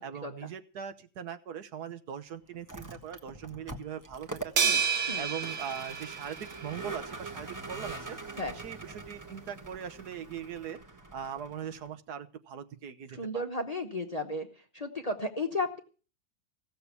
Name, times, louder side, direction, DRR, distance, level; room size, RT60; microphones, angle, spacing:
voice 1, 0.0-4.8 5.2-8.2 8.5-10.8 11.1-13.4, right 8 dB, 70° right, 9 dB, 1.5 m, -41 dB
Vehicle, 2.5-11.9, right 3 dB, 10° right, 1.2 m, -44 dB
sound 1, 4.6-7.1, right 6 dB, 50° right, 1.2 m, -30 dB
voice 2, 13.2-14.5 14.7-15.8, left 2 dB, 25° left, 5 dB, 0.9 m, -33 dB
16.0 x 7.0 x 8.3 m, 0.38 s
omnidirectional pair, 1.8 m